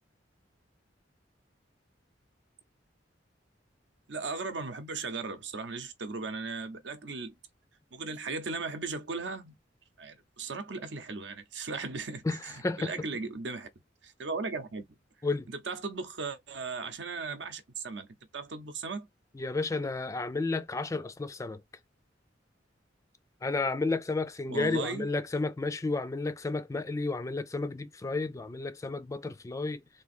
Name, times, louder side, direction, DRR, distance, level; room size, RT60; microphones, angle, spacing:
voice 1, 4.1-7.3 7.9-9.5 10.0-13.7 14.0-15.0 15.7-18.1 18.3-19.1 24.5-25.1, right 4 dB, 75° right, 0.7 m, -37 dB
voice 2, 12.2-13.1 15.2-15.5 19.3-21.6 23.4-29.8, left 3 dB, 15° left, 0.3 m, -32 dB
3.5 x 2.6 x 4.2 m
head